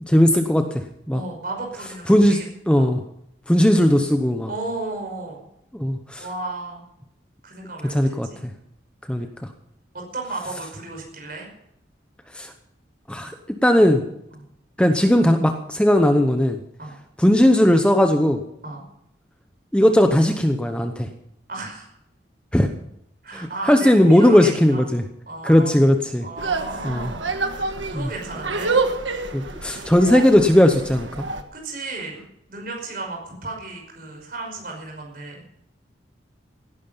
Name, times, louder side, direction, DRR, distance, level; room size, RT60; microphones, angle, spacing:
voice 1, 0.1-1.2 2.1-2.4 2.7-3.0 3.5-4.5 5.7-6.2 7.9-8.5 9.1-9.3 12.3-12.5 13.1-13.3 13.6-14.0 14.8-16.6 17.2-18.4 19.7-21.1 22.5-22.7 23.3-25.0 25.4-26.2 26.8-27.1 27.9-28.1 29.3-31.1, left 1 dB, 5° left, 6 dB, 0.8 m, -17 dB
voice 2, 1.1-2.5 2.7-2.9 4.5-5.5 6.2-6.8 7.4-8.4 9.1-9.3 10.1-11.5 14.3-14.5 16.8-16.9 18.6-18.8 21.5-21.9 23.2-24.9 25.3-25.7 26.2-27.3 27.9-28.7 31.5-32.2 32.5-35.4, right 2 dB, 50° right, 1 dB, 5.5 m, -34 dB
sound 1, 26.4-31.4, right 3 dB, 90° right, 1.5 m, -27 dB
17.5 x 11.0 x 5.6 m, 0.76 s
head